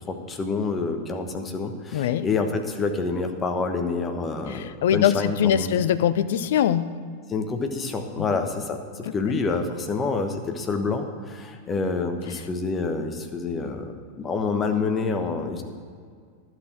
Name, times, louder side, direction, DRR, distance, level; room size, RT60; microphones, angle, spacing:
voice 1, 0.1-5.8 7.3-15.6, left 4 dB, 20° left, 5 dB, 1.2 m, -27 dB
voice 2, 1.9-2.3 4.5-6.9 8.2-8.4, left 10 dB, 55° left, 13 dB, 0.5 m, -22 dB
11.5 x 6.3 x 7.6 m, 2.1 s
figure-of-eight pair, 90°, 0 cm